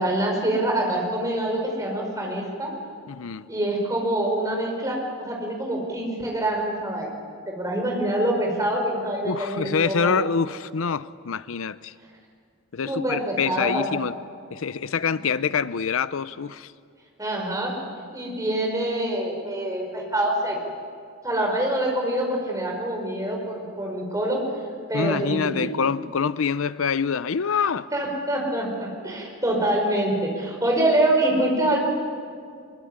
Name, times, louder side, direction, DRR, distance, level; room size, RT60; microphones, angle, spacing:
voice 1, 0.0-2.7 3.5-7.1 7.5-10.2 12.9-13.9 15.1-15.2 17.2-17.7 18.1-20.6 21.2-24.4 24.9-25.7 27.9-31.8, right 1 dB, 15° right, 5.1 m, -25 dB
voice 2, 3.1-3.5 9.2-11.9 12.7-14.1 14.5-16.7 24.9-27.9, left 6 dB, 75° left, 0.6 m, -26 dB
23.0 x 22.5 x 9.7 m
head